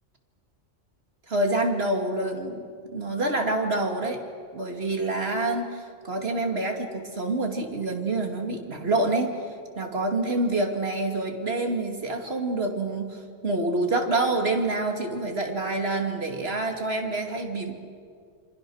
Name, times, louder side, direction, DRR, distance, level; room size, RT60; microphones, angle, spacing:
voice 1, 1.3-4.2 4.5-9.3 9.7-17.7, right 2 dB, 55° right, 3 dB, 2.7 m, -27 dB
28.5 x 25.0 x 6.4 m, 2.1 s
omnidirectional pair, 1.2 m